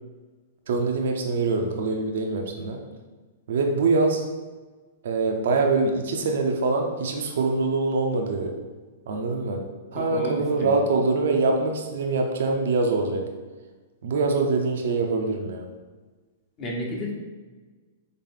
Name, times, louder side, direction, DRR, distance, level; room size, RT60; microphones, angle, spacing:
voice 1, 0.7-2.8 3.5-4.3 5.0-8.5 9.1-13.3 14.0-15.7, right 3 dB, 65° right, 3 dB, 0.5 m, -24 dB
voice 2, 9.9-10.8 16.6-17.1, left 1 dB, 35° left, -1 dB, 1.0 m, -31 dB
3.8 x 3.8 x 3.6 m, 1.3 s
hypercardioid pair, 115°, 0 cm